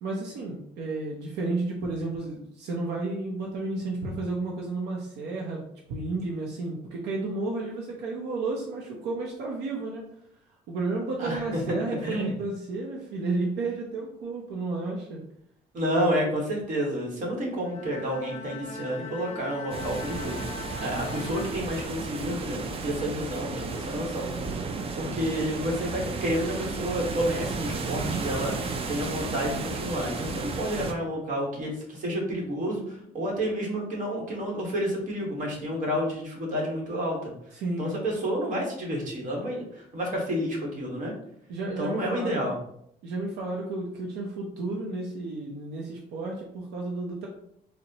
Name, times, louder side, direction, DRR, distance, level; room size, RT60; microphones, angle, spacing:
voice 1, 0.0-5.6 5.9-10.0 10.7-15.2 37.5-38.0 41.5-42.5 43.0-47.3, right 3 dB, 80° right, -1 dB, 0.6 m, -32 dB
voice 2, 11.2-11.6 12.0-12.3 15.7-37.3 37.8-41.1 41.8-42.5, equal, 50° right, -1 dB, 1.2 m, -30 dB
Bowed string instrument, 17.5-22.2, left 3 dB, 40° left, 0.5 m, -41 dB
sound 1, 19.7-30.9, right 4 dB, 35° right, 0.4 m, -33 dB
4.0 x 2.1 x 2.8 m, 0.72 s
cardioid pair, 110°, 17 cm